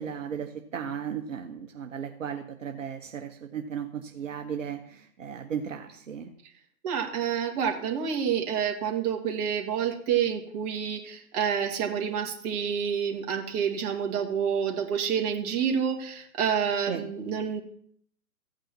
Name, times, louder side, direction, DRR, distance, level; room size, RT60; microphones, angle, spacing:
voice 1, 0.0-6.3 16.9-17.0, right 7 dB, 60° right, 4 dB, 1.2 m, -35 dB
voice 2, 6.8-17.6, right 7 dB, 25° right, 1 dB, 2.1 m, -28 dB
15.0 x 9.0 x 4.5 m, 0.62 s
hypercardioid pair, 140°, 44 cm